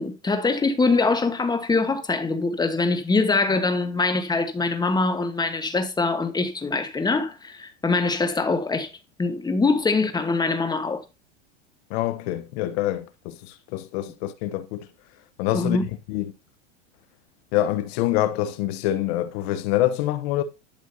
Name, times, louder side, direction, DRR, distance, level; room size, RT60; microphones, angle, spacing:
voice 1, 0.0-8.9 9.2-11.0 15.5-15.8, left 3 dB, 10° left, 1.3 m, -23 dB
voice 2, 11.9-14.9 15.4-16.3 17.5-20.4, left 13 dB, 60° left, 1.0 m, -26 dB
12.0 x 6.2 x 2.7 m
supercardioid pair, 125°, 36 cm